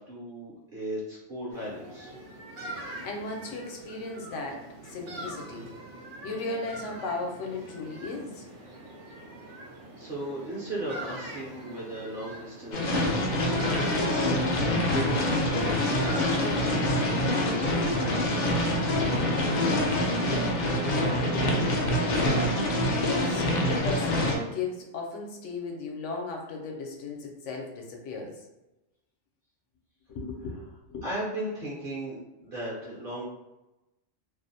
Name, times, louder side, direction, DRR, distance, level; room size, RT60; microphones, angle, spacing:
voice 1, 0.0-2.1 10.0-13.2 13.8-16.7 17.1-17.3 17.7-18.7 19.1-19.9 20.6-22.1 31.0-33.2, right 1 dB, 55° right, -7 dB, 0.8 m, -37 dB
sound 1, 1.5-16.9, right 1 dB, 80° right, 0.9 m, -43 dB
voice 2, 2.8-5.7 6.2-8.5 22.8-28.3 30.1-30.6 30.9-31.0, left 3 dB, 85° left, 1 dB, 0.9 m, -36 dB
sound 2, 12.7-24.4, left 1 dB, 60° left, 0.5 m, -25 dB
2.5 x 2.0 x 2.6 m, 0.97 s
omnidirectional pair, 1.2 m